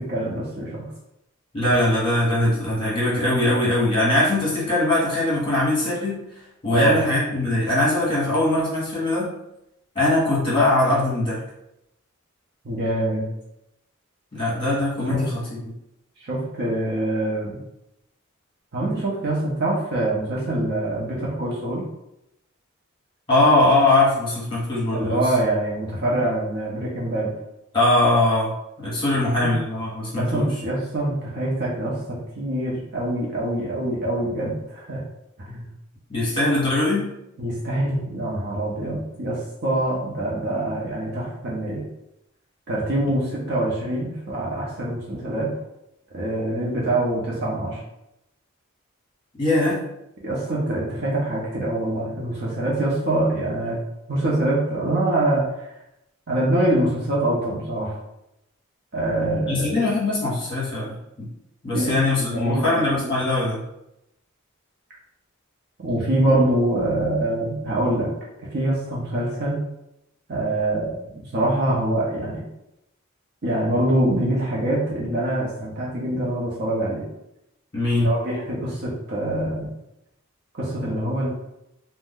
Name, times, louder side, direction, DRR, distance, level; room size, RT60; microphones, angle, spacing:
voice 1, 0.1-0.8 6.7-6.9 12.6-13.3 15.1-15.2 16.2-17.6 18.7-21.8 24.9-27.3 29.3-29.5 30.2-35.0 35.5-35.7 37.4-41.8 42.7-45.5 46.1-47.8 50.2-53.8 54.1-55.4 56.3-58.0 58.9-59.8 61.7-63.1 65.8-68.1 68.5-69.6 70.3-72.4 73.4-77.1 77.9-79.7 80.6-81.3, right 1 dB, 50° right, -5 dB, 0.6 m, -24 dB
voice 2, 1.5-6.2 6.6-9.3 9.9-11.4 14.3-15.7 23.3-25.3 27.7-28.5 28.8-30.5 36.1-37.1 49.4-49.8 59.5-61.3 61.6-63.6 77.7-78.1, left 2 dB, 25° left, -6 dB, 1.2 m, -21 dB
2.5 x 2.1 x 3.6 m, 0.85 s
head